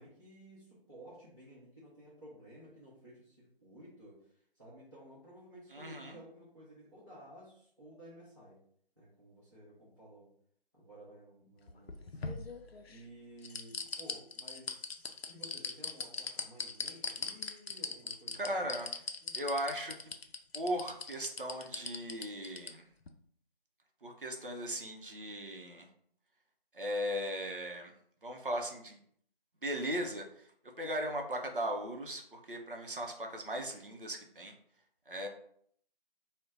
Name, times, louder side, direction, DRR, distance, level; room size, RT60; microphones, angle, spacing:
voice 1, 0.0-8.6 9.0-10.3 10.7-12.3 12.9-18.4 19.2-19.4, right 1 dB, 25° right, -10 dB, 0.8 m, -54 dB
voice 2, 5.7-6.2 18.4-19.1 19.3-19.9 20.5-22.8 24.0-25.9 26.7-27.9 28.2-29.0 29.6-30.5 30.8-34.5 35.1-35.3, equal, 60° right, 3 dB, 0.7 m, -37 dB
sound 1, 11.7-13.0 13.4-22.7 23.1-23.2, left 4 dB, 80° left, 0.5 m, -39 dB
2.6 x 2.1 x 3.5 m, 0.64 s
figure-of-eight pair, 170°, 30 cm